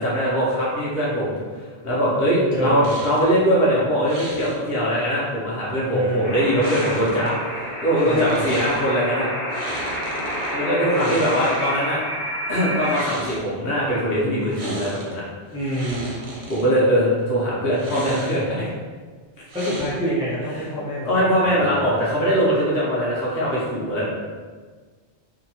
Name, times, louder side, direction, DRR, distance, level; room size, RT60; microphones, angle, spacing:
voice 1, 0.0-9.3 10.5-12.0 12.5-15.2 16.5-18.7 20.5-20.6 21.1-24.1, equal, 60° left, -7 dB, 0.9 m, -21 dB
voice 2, 2.5-2.9 5.9-6.4 8.0-8.4 10.6-11.2 15.5-16.1 19.5-21.8, equal, 5° right, -9 dB, 0.6 m, -26 dB
sound 1, 2.8-3.3 4.1-4.6 6.6-7.3 8.0-8.8 9.5-10.5 10.9-11.9 12.7-13.4 14.5-15.1 15.5-16.6 17.7-18.6 19.5-20.2, right 1 dB, 70° right, 1.0 m, -35 dB
sound 2, 6.2-13.0, equal, 85° left, 1.1 m, -29 dB
2.8 x 2.2 x 2.7 m, 1.5 s
omnidirectional pair, 1.1 m